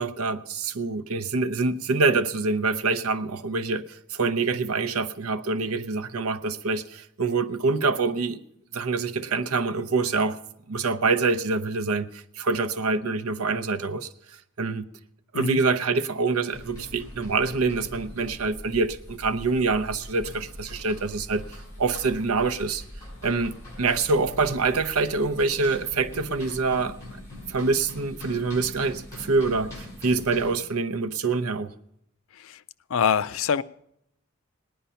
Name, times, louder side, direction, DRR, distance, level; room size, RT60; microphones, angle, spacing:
voice 1, 0.0-8.4 8.7-10.4 10.7-14.1 14.6-14.9 15.3-22.8 23.2-27.0 27.5-31.7, right 4 dB, 80° right, 0.7 m, -25 dB
sound 1, 16.5-30.5, left 1 dB, 15° left, 7.1 m, -42 dB
voice 2, 32.9-33.6, left 7 dB, 65° left, 0.4 m, -24 dB
18.5 x 10.0 x 5.6 m
head